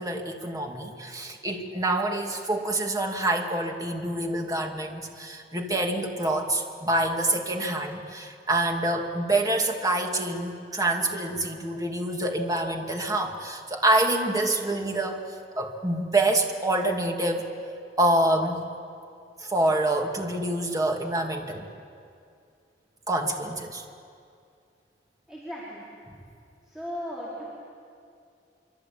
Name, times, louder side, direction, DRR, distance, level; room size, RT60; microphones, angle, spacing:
voice 1, 0.0-15.2 15.6-17.4 18.0-18.6 19.4-21.6 23.1-23.8, right 1 dB, 20° right, 2 dB, 2.6 m, -26 dB
voice 2, 25.3-25.8 26.7-27.4, equal, ahead, -8 dB, 5.0 m, -36 dB
26.0 x 25.0 x 8.8 m, 2.4 s
head